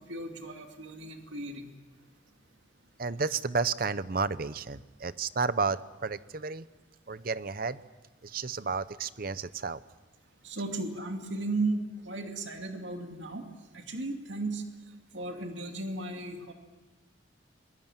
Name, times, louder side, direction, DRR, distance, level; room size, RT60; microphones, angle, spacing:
voice 1, 0.0-1.7 10.4-13.5 13.7-14.6 15.1-16.5, right 2 dB, 75° right, 4 dB, 2.5 m, -35 dB
voice 2, 3.0-6.7 7.1-7.8 8.2-9.8, right 4 dB, 50° right, 15 dB, 0.8 m, -32 dB
27.0 x 22.5 x 7.4 m, 1.2 s
head